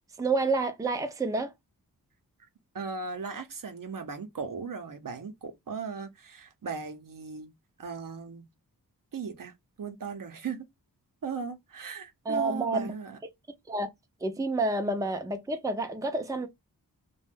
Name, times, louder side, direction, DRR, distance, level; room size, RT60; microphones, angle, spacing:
voice 1, 0.2-1.5 12.3-12.9 13.7-13.9 14.2-16.5, right 3 dB, 10° right, 0.5 m, -29 dB
voice 2, 2.7-7.5 7.8-8.5 9.1-10.6 11.2-13.2, right 5 dB, 55° right, 0.7 m, -37 dB
2.4 x 2.2 x 3.4 m
wide cardioid pair, 65°, 38 cm